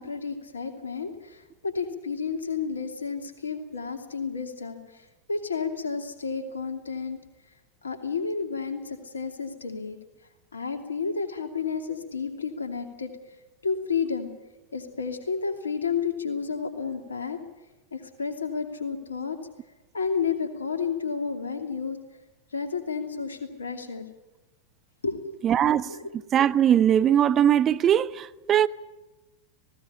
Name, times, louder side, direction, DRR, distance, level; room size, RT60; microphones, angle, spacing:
voice 1, 0.0-7.2 7.8-10.0 10.5-13.1 13.6-14.3 14.7-17.4 17.9-19.4 19.9-22.0 22.5-24.1 25.0-25.4 25.6-26.1, left 5 dB, 75° left, 2.7 m, -31 dB
voice 2, 25.4-25.9 26.3-28.7, right 10 dB, 30° right, 0.8 m, -20 dB
18.5 x 17.0 x 9.9 m
figure-of-eight pair, 90°, 0 cm